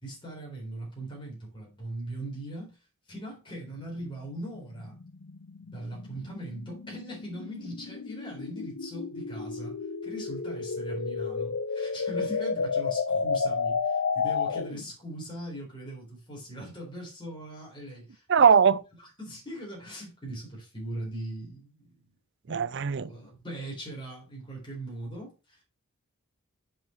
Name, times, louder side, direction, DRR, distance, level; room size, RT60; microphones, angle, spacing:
voice 1, 0.0-2.8 3.1-5.0 5.7-9.8 10.0-18.4 19.0-21.9 22.5-22.6 23.0-25.6, right 1 dB, 20° left, 4.0 m, -40 dB
sound 1, 3.7-14.9, left 5 dB, 65° left, 0.6 m, -32 dB
voice 2, 18.3-18.8 22.5-23.1, right 6 dB, 50° right, 0.5 m, -20 dB
7.3 x 6.0 x 4.5 m
head